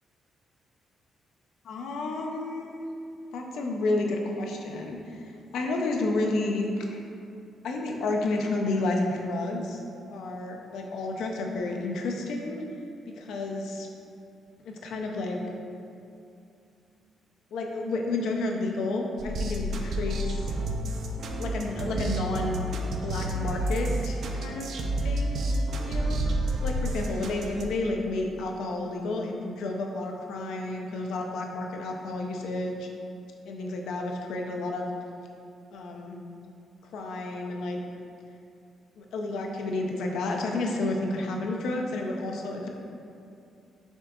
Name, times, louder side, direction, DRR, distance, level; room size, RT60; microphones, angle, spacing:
voice 1, 1.6-2.9 3.3-7.0 7.6-9.8 10.1-12.6 13.1-13.9 14.6-15.4 17.5-20.5 21.4-22.7 23.0-24.7 25.0-25.5 25.8-32.9 33.4-34.9 35.7-36.2 36.9-37.8 39.0-42.7, left 2 dB, 80° left, 1 dB, 0.5 m, -31 dB
sound 1, 19.2-27.6, right 1 dB, 55° right, 0.4 m, -30 dB
6.3 x 3.6 x 2.3 m, 2.6 s
cardioid pair, 160°, 0 cm